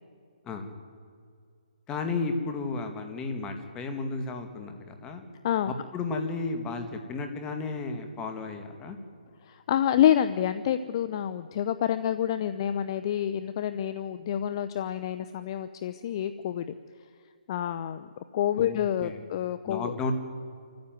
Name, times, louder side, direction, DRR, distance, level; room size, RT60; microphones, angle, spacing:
voice 1, 1.9-5.2 5.7-9.0 18.6-19.2 19.7-20.1, left 3 dB, 15° left, 5 dB, 2.1 m, -33 dB
voice 2, 9.4-16.6 17.5-18.1 18.3-19.9, left 10 dB, 35° left, 12 dB, 0.7 m, -28 dB
25.5 x 14.5 x 9.3 m, 2.3 s
hypercardioid pair, 155°, 4 cm